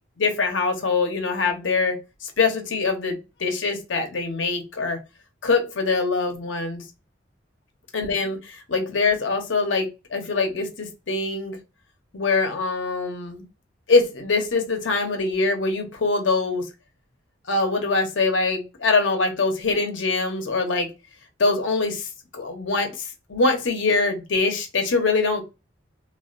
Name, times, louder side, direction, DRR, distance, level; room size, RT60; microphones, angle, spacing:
voice 1, 0.2-5.0 5.4-6.8 7.9-11.6 12.1-13.4 13.9-16.7 17.5-20.9 21.4-22.1 22.3-25.4, left 3 dB, 80° left, 4 dB, 0.8 m, -23 dB
3.3 x 2.4 x 2.5 m, 0.27 s
head